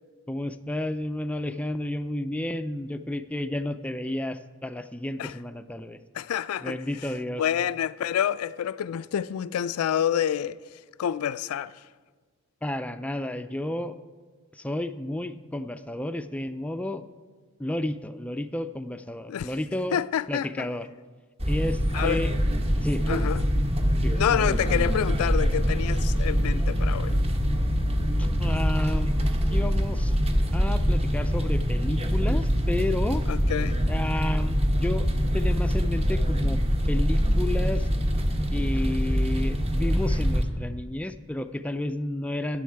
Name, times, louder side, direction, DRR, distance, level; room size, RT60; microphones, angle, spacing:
voice 1, 0.3-6.0 6.6-7.4 12.6-14.0 14.5-17.0 17.6-20.0 20.3-20.9 21.5-22.3 22.8-23.0 24.0-24.6 28.2-29.2 29.5-30.2 30.5-33.2 33.9-35.1 35.3-36.6 36.9-37.9 38.5-42.6, left 1 dB, 5° left, 0.3 m, -31 dB
voice 2, 6.1-6.8 7.4-10.6 11.0-11.7 19.3-19.5 19.9-20.7 21.9-22.2 23.1-23.4 24.1-27.2 33.3-33.8, left 9 dB, 85° left, 0.3 m, -28 dB
sound 1, 21.4-40.4, equal, 30° right, 1.0 m, -24 dB
13.5 x 9.2 x 4.6 m
head